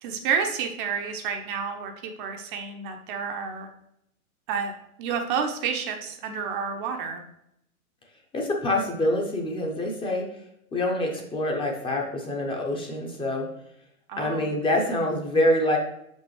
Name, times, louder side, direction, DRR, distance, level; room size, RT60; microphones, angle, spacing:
voice 1, 0.0-3.7 4.5-4.7 5.0-7.2 14.1-14.5, right 6 dB, 35° right, 5 dB, 0.8 m, -30 dB
voice 2, 8.3-10.3 10.7-13.5 14.2-15.8, left 1 dB, 10° left, 0 dB, 0.8 m, -25 dB
6.6 x 5.4 x 3.2 m, 0.76 s
figure-of-eight pair, 110°, 44 cm